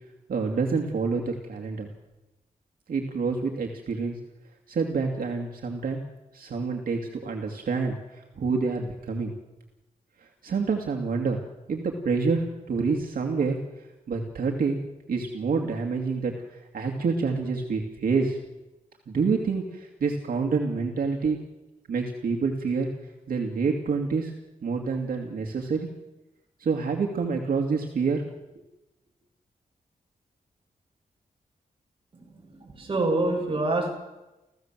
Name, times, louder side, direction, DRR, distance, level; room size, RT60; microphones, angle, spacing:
voice 1, 0.3-1.9 2.9-4.2 4.7-6.0 6.3-9.3 10.2-11.4 11.7-13.6 14.1-14.8 15.1-18.4 19.1-21.4 21.9-22.9 23.3-24.3 24.6-25.9 26.6-28.2, right 4 dB, 75° right, 2 dB, 2.4 m, -27 dB
voice 2, 32.1-33.9, right 2 dB, 35° right, -1 dB, 7.4 m, -27 dB
29.5 x 15.5 x 7.6 m, 1.0 s
wide cardioid pair, 160°, 15 cm